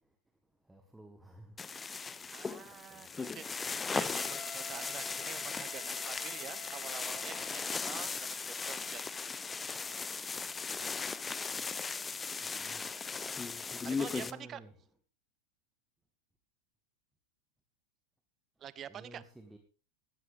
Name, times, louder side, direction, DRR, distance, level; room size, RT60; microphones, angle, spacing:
voice 1, 0.7-1.6 1.9-2.1 2.9-3.0 5.4-6.7 9.4-10.0 11.7-11.9 12.4-12.8 14.2-14.8 18.9-19.6, right 1 dB, 5° right, 1.6 m, -56 dB
sound 1, 1.6-14.3, left 5 dB, 15° left, 0.7 m, -38 dB
voice 2, 2.3-8.4 8.6-9.2 13.8-14.6 18.6-19.2, right 10 dB, 25° right, 0.8 m, -47 dB
Wind instrument woodwind instrument, 4.1-8.0, left 5 dB, 35° left, 1.6 m, -49 dB
17.5 x 12.5 x 3.6 m
figure-of-eight pair, 90°, 0 cm